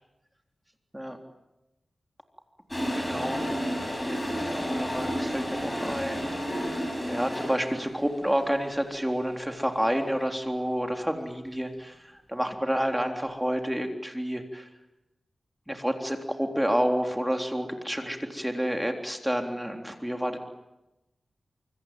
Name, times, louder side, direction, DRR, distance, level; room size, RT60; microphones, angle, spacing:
Toilet flush, 2.7-7.9, equal, 15° left, 6.3 m, -31 dB
voice 1, 2.9-3.5 4.6-6.4 6.6-14.7 15.7-20.4, equal, 5° right, 4 dB, 3.6 m, -29 dB
26.5 x 23.5 x 9.2 m, 0.94 s
wide cardioid pair, 100°, 0 cm